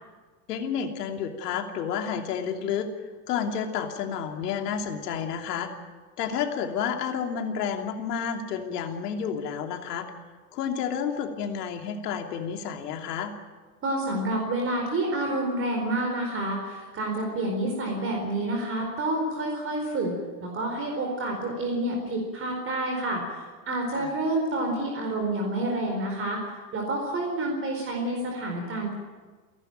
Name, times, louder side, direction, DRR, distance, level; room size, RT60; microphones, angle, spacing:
voice 1, 0.5-2.9 3.3-5.7 6.2-10.1 10.5-13.3 23.9-24.2, left 7 dB, 75° left, 4 dB, 3.0 m, -30 dB
voice 2, 13.8-20.1 20.4-26.4 26.7-28.9, right 1 dB, 25° right, 1 dB, 4.5 m, -28 dB
30.0 x 12.0 x 9.1 m, 1.4 s
supercardioid pair, 130°, 48 cm